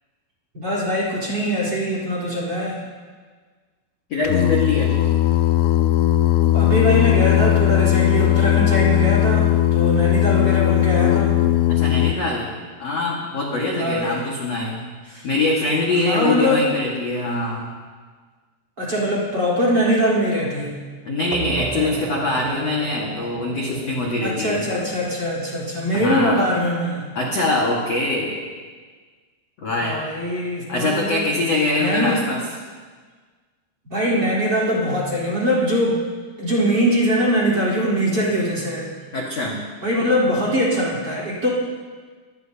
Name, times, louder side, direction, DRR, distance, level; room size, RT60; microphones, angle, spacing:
voice 1, 0.5-2.8 6.5-11.3 13.7-14.2 15.1-15.3 16.0-16.7 18.8-20.8 24.2-27.1 29.8-31.2 31.8-32.3 33.9-36.0 36.4-38.9 39.8-41.5, equal, 25° right, -4 dB, 3.9 m, -22 dB
voice 2, 4.1-5.0 11.7-14.8 15.2-17.7 21.0-24.7 25.9-26.4 27.1-28.4 29.6-30.0 30.7-32.4 39.1-39.6, left 2 dB, 60° left, -3 dB, 1.7 m, -23 dB
Singing, 4.2-12.1, left 13 dB, 85° left, 3.2 m, -18 dB
sound 1, 21.3-26.7, right 7 dB, 90° right, 3.4 m, -34 dB
25.5 x 18.5 x 2.9 m, 1.5 s
omnidirectional pair, 5.8 m